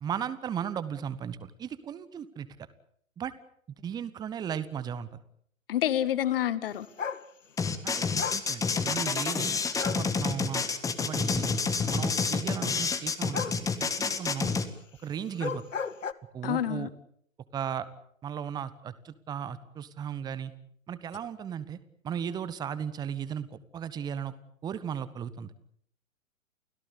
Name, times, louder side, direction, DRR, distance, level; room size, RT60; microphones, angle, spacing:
voice 1, 0.0-2.5 3.2-3.3 3.8-5.1 7.8-9.5 9.8-10.6 11.0-11.6 11.9-14.5 15.0-15.6 16.3-16.9 17.5-17.9 18.2-20.5 20.9-21.8 22.0-24.3 24.6-25.5, right 8 dB, 10° right, 15 dB, 1.1 m, -36 dB
voice 2, 5.7-6.9 16.4-16.9, left 11 dB, 45° left, 16 dB, 1.9 m, -28 dB
sound 1, 7.0-7.3 8.2-8.5 9.7-10.1 13.3-13.6 15.3-16.1, left 6 dB, 70° left, 1.5 m, -34 dB
sound 2, 7.6-14.7, left 5 dB, 10° left, 1.5 m, -28 dB
29.5 x 17.0 x 8.5 m, 0.65 s
figure-of-eight pair, 115°, 40 cm